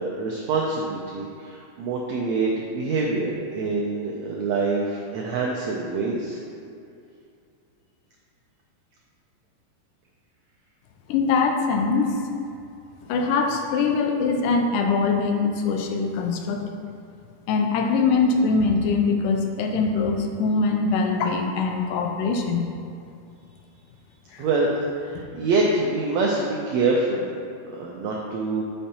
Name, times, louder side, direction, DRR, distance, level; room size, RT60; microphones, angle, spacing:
voice 1, 0.0-6.4 24.4-27.3 27.7-28.6, right 3 dB, 90° right, -2 dB, 1.5 m, -25 dB
voice 2, 11.1-12.2 13.1-16.6 17.5-22.7 24.3-24.4 25.2-25.3, left 4 dB, 80° left, 3 dB, 2.2 m, -22 dB
8.5 x 5.7 x 2.9 m, 2.5 s
omnidirectional pair, 3.8 m